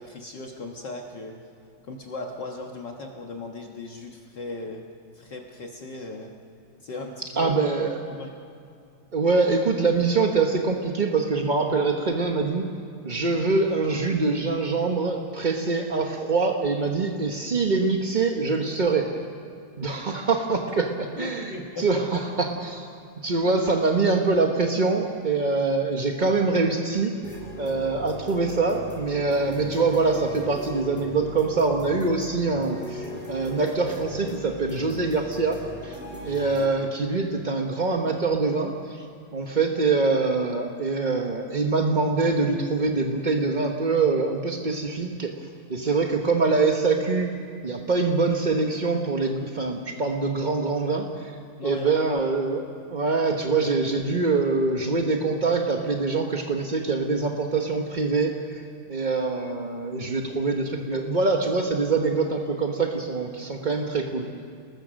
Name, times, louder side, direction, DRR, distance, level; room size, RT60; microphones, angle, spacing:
voice 1, 0.0-1.4 1.8-4.9 5.1-6.3 6.8-7.5 8.1-8.3 20.7-20.8 21.2-22.1 51.6-52.1, left 2 dB, 55° left, 1 dB, 2.0 m, -37 dB
voice 2, 7.4-8.0 9.1-12.7 13.0-19.1 19.8-20.9 21.2-22.9 23.2-27.1 27.6-39.1 39.3-45.3 45.7-47.3 47.6-51.3 51.6-52.6 52.9-64.3, right 3 dB, 35° right, 2 dB, 0.8 m, -24 dB
sound 1, 27.2-36.7, equal, 5° right, 6.0 m, -39 dB
30.0 x 20.5 x 6.4 m, 2.4 s
omnidirectional pair, 2.4 m